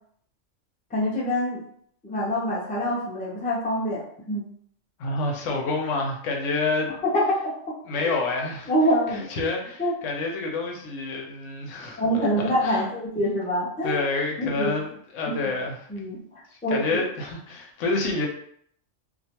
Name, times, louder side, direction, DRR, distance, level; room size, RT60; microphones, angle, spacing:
voice 1, 0.9-1.6 2.0-4.0 4.3-4.4 7.1-7.2 8.7-9.3 9.8-9.9 12.0-14.0 14.4-14.8 15.3-15.4 15.9-16.2 16.6-17.0, equal, 10° left, -6 dB, 0.4 m, -25 dB
voice 2, 5.0-6.9 7.9-8.7 9.1-12.9 13.8-15.8 16.7-18.3, left 3 dB, 75° left, 0 dB, 0.9 m, -28 dB
2.5 x 2.2 x 2.8 m, 0.65 s
omnidirectional pair, 1.3 m